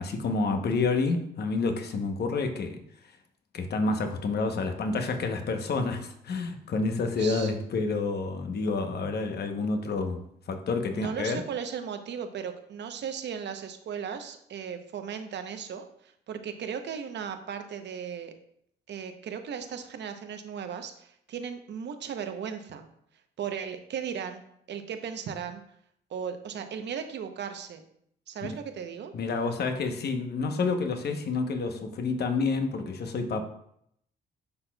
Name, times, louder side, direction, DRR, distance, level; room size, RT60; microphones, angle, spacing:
voice 1, 0.0-2.8 3.5-10.2 10.5-11.4 28.4-28.5 29.1-33.4, left 3 dB, 55° left, 5 dB, 0.9 m, -29 dB
voice 2, 7.2-7.5 10.9-18.3 18.9-22.9 23.4-25.6 26.1-27.8 28.3-29.1, right 7 dB, 60° right, 7 dB, 0.8 m, -36 dB
10.5 x 4.2 x 2.3 m, 0.71 s
cardioid pair, 90°, 20 cm